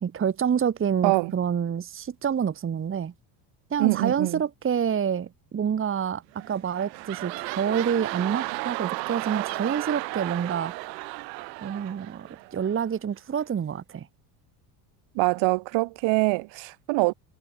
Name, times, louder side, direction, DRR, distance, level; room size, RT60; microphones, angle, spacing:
voice 1, 0.0-3.1 3.7-10.7 11.6-14.1, right 8 dB, 25° right, 1.3 m, -27 dB
voice 2, 3.8-4.4 15.1-17.1, right 23 dB, 70° right, 2.9 m, -24 dB
sound 1, 6.3-12.9 13.4-13.5, right 24 dB, 85° right, 2.4 m, -34 dB
supercardioid pair, 100°, 48 cm